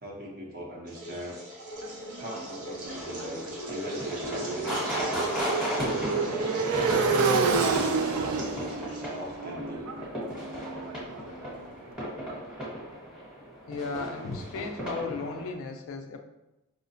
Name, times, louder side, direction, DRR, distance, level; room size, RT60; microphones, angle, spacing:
voice 1, 0.0-1.4 2.2-5.3 6.1-7.1 7.6-10.0, equal, 45° right, -1 dB, 0.7 m, -41 dB
sound 1, 0.9-9.4, equal, 85° right, 0.8 m, -38 dB
Motorcycle, 1.8-11.7, right 4 dB, 65° right, 0.3 m, -30 dB
sound 2, 2.9-15.5, equal, 5° right, 1.0 m, -36 dB
voice 2, 13.7-16.2, left 4 dB, 65° left, 5 dB, 0.4 m, -35 dB
4.9 x 2.1 x 2.6 m, 0.96 s
head